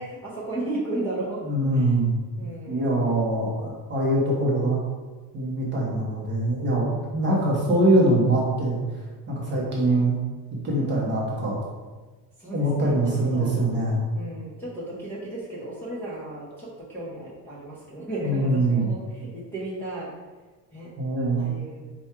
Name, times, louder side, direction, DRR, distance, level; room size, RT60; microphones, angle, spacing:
voice 1, 0.0-1.4 1.7-1.8 2.4-2.9 9.5-9.8 10.7-11.0 12.4-12.9 13.3-13.6 14.1-20.1 20.7-20.9 21.4-21.8, right 2 dB, 5° left, -10 dB, 0.7 m, -34 dB
voice 2, 1.4-2.1 2.7-4.8 5.3-8.8 9.3-10.2 10.6-11.7 12.5-14.0 18.2-18.9 21.0-21.5, right 1 dB, 25° right, -4 dB, 0.8 m, -23 dB
4.6 x 2.3 x 4.3 m, 1.3 s
cardioid pair, 175°, 41 cm